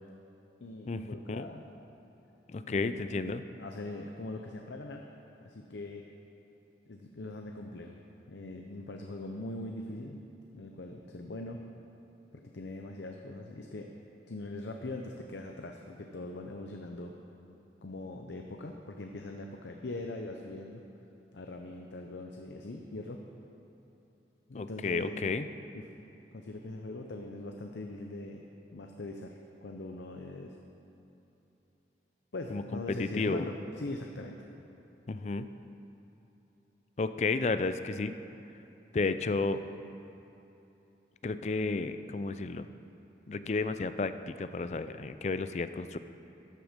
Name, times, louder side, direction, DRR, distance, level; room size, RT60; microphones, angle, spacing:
voice 1, 0.6-1.6 2.6-3.0 3.6-5.0 5.4-6.1 6.9-8.0 8.3-10.2 10.5-11.6 12.4-13.9 14.3-17.1 17.8-20.8 21.3-23.2 24.5-25.2 25.7-25.8 26.3-28.4 28.7-30.6 32.3-34.4, left 2 dB, 85° left, 3 dB, 0.7 m, -41 dB
voice 2, 2.5-3.4 24.5-25.5 32.5-33.4 35.1-35.5 37.0-38.1 38.9-39.6 41.2-42.7 43.3-46.0, left 3 dB, 40° left, 11 dB, 0.4 m, -32 dB
13.5 x 8.0 x 5.1 m, 3.0 s
head